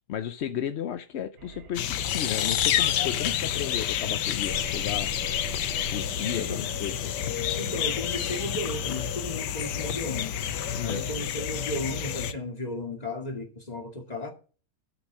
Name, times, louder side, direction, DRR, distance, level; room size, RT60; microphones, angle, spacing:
voice 1, 0.1-5.1 5.9-7.1 10.7-11.0, left 10 dB, 65° left, 0.7 m, -34 dB
sound 1, 1.4-11.0, right 5 dB, 70° right, 1.8 m, -49 dB
sound 2, 1.7-12.3, left 10 dB, 90° left, 1.4 m, -29 dB
Meow, 4.4-9.1, right 8 dB, 55° right, 1.0 m, -45 dB
voice 2, 6.3-6.6 7.5-10.4 10.8-14.3, left 1 dB, 25° left, 2.2 m, -34 dB
11.0 x 6.9 x 6.1 m
omnidirectional pair, 1.8 m